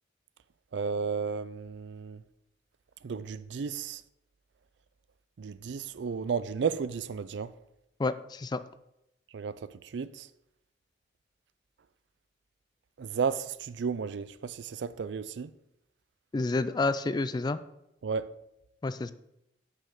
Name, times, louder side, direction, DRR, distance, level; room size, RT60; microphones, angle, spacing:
voice 1, 0.7-2.2 3.0-4.0 5.4-7.5 9.3-10.3 13.0-15.5 18.0-18.3, right 6 dB, 80° right, 0.4 m, -33 dB
voice 2, 8.0-8.6 16.3-17.6 18.8-19.1, left 3 dB, 25° left, 0.3 m, -29 dB
6.2 x 5.3 x 6.5 m
head